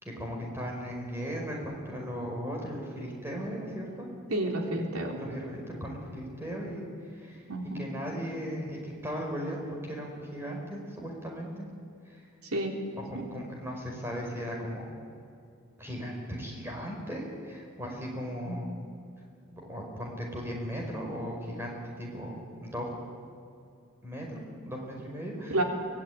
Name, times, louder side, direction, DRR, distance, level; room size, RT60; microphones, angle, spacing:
voice 1, 0.0-4.1 5.2-7.4 7.7-11.7 12.0-12.2 13.0-14.9 15.8-18.7 19.5-22.9 24.0-25.6, equal, 10° right, -1 dB, 5.1 m, -37 dB
voice 2, 4.3-5.2 7.5-7.9 12.4-12.8 13.1-13.3 18.5-18.6 25.5-25.6, right 1 dB, 90° right, 2 dB, 3.5 m, -30 dB
24.0 x 19.5 x 9.5 m, 2.5 s
head